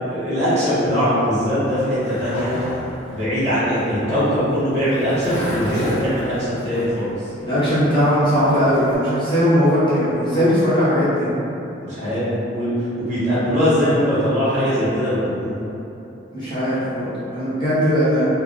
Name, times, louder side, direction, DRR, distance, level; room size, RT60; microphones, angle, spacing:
voice 1, 0.0-2.6 3.1-6.3 6.6-7.1 11.8-12.7 13.0-15.6, equal, 35° right, -12 dB, 1.5 m, -21 dB
Skateboard, 1.6-9.0, equal, 90° left, 1.4 m, -32 dB
voice 2, 7.4-11.3 16.3-18.3, equal, 25° left, -12 dB, 0.9 m, -19 dB
4.0 x 2.4 x 3.2 m, 2.9 s
head